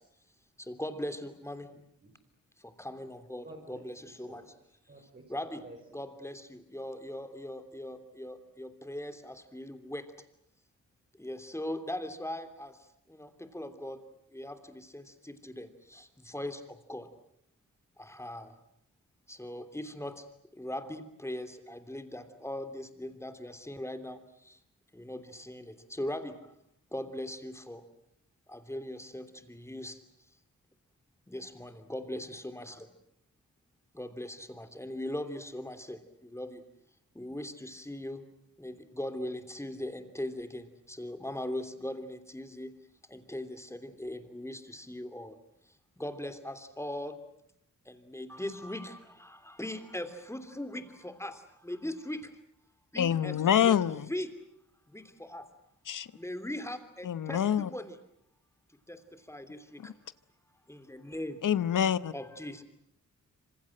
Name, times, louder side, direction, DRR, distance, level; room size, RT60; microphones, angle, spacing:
voice 1, 0.7-1.7 2.8-4.4 5.3-5.6 5.9-10.0 11.2-12.7 13.2-14.0 14.3-15.7 15.9-16.6 16.9-17.1 18.0-18.5 19.3-20.1 20.6-24.2 24.9-26.4 26.9-27.8 28.5-29.9 31.3-32.9 34.0-36.6 37.1-38.2 38.6-42.7 43.1-45.3 46.0-47.1 47.9-51.4 51.6-52.2 52.9-53.4 53.6-53.8 54.1-54.3 54.9-55.4 56.2-57.9 58.9-59.0 59.3-59.6 60.7-61.4 62.1-62.6, left 1 dB, 10° left, 3.1 m, -39 dB
voice 2, 1.7-2.2 3.4-5.3 5.6-6.1, right 2 dB, 35° right, 4.9 m, -52 dB
voice 3, 53.0-54.1 55.9-56.1 57.0-57.7 59.8-59.9 61.4-62.1, left 9 dB, 80° left, 1.0 m, -26 dB
27.0 x 26.5 x 7.7 m
wide cardioid pair, 105°, 31 cm